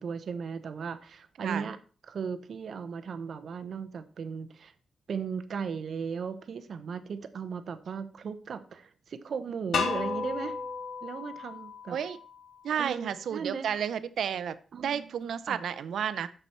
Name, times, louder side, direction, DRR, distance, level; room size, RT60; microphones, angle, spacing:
voice 1, 0.0-1.8 2.1-4.7 5.1-10.6 11.0-12.0 12.8-13.7 14.7-15.1 15.5-15.6, right 6 dB, 60° right, 11 dB, 0.8 m, -37 dB
sound 1, 9.7-12.6, left 5 dB, 75° left, 1.4 m, -34 dB
voice 2, 12.6-16.3, right 8 dB, 90° right, 14 dB, 0.6 m, -32 dB
9.2 x 6.8 x 4.3 m, 0.38 s
wide cardioid pair, 165°, 0 cm